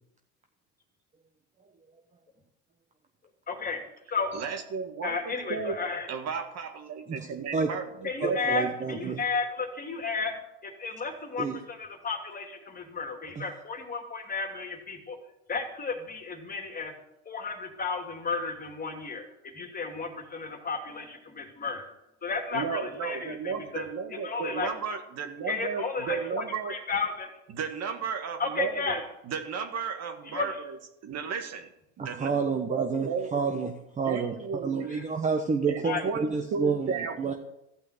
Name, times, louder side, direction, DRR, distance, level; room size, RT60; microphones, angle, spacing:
voice 1, 3.5-3.8 4.1-4.3 5.0-6.1 8.0-10.4 10.6-15.2 15.5-16.9 17.3-21.9 22.2-23.8 24.1-24.7 25.5-27.4 28.4-29.0 30.3-30.6 34.9-35.0 35.8-36.0, left 4 dB, 25° left, 3 dB, 2.6 m, -33 dB
voice 2, 4.3-5.8 6.1-8.7 22.5-26.8 27.5-30.8 31.0-31.7 32.0-33.5 34.0-35.0 35.7-37.3, right 6 dB, 45° right, 6 dB, 1.8 m, -34 dB
voice 3, 8.2-9.2 11.4-11.6 13.3-13.4 32.0-34.3 34.6-37.3, right 5 dB, 20° right, 4 dB, 1.1 m, -29 dB
14.5 x 5.7 x 8.0 m, 0.86 s
supercardioid pair, 110°, 37 cm